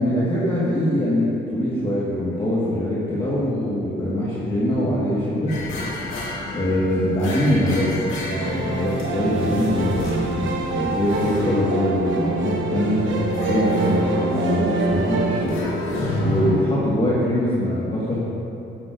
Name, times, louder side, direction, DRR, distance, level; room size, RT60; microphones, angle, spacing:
voice 1, 0.0-5.5 6.5-8.0 8.3-13.0 13.5-15.6 16.2-18.2, left 1 dB, 25° left, -9 dB, 1.6 m, -23 dB
sound 1, 5.5-16.5, left 1 dB, 90° left, 1.9 m, -30 dB
sound 2, 8.3-15.5, right 4 dB, 75° right, 1.1 m, -26 dB
9.4 x 9.0 x 2.6 m, 2.8 s
cardioid pair, 90°, 20 cm